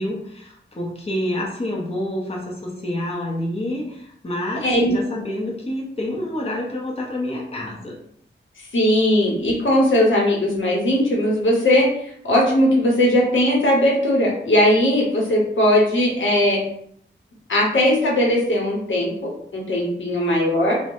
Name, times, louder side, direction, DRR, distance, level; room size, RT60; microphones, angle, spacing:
voice 1, 0.0-7.9, left 1 dB, 30° left, -3 dB, 0.7 m, -28 dB
voice 2, 4.6-5.0 8.7-16.6 17.5-20.8, left 1 dB, 75° left, -3 dB, 0.8 m, -19 dB
3.1 x 2.1 x 2.6 m, 0.67 s
wide cardioid pair, 75°, 20 cm